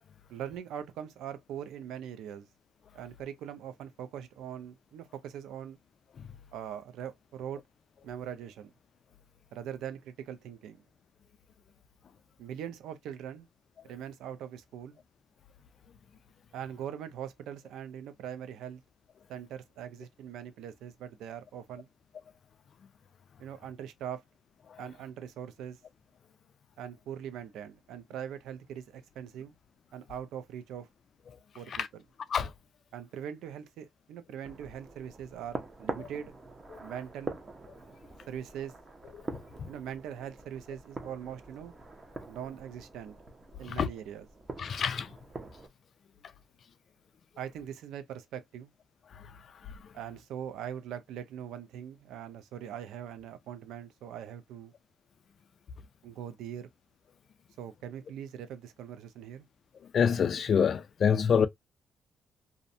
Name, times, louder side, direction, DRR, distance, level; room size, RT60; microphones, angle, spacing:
voice 1, 0.3-2.5 2.9-5.8 6.5-7.6 8.0-8.7 9.5-10.8 12.4-13.5 13.8-15.0 16.5-18.8 19.3-21.9 23.4-24.2 24.8-25.8 26.8-29.5 29.9-30.9 31.5-32.0 32.9-36.3 36.8-37.3 38.3-38.7 39.7-41.7 42.3-43.2 43.6-44.3 47.4-48.7 49.9-54.7 56.0-56.7 57.6-59.4, right 9 dB, 85° right, 0.4 m, -41 dB
sound 1, 34.4-45.7, right 3 dB, 30° right, 0.7 m, -44 dB
voice 2, 44.6-45.1 59.9-61.5, left 7 dB, 55° left, 0.4 m, -26 dB
2.5 x 2.1 x 2.5 m
cardioid pair, 90°, 0 cm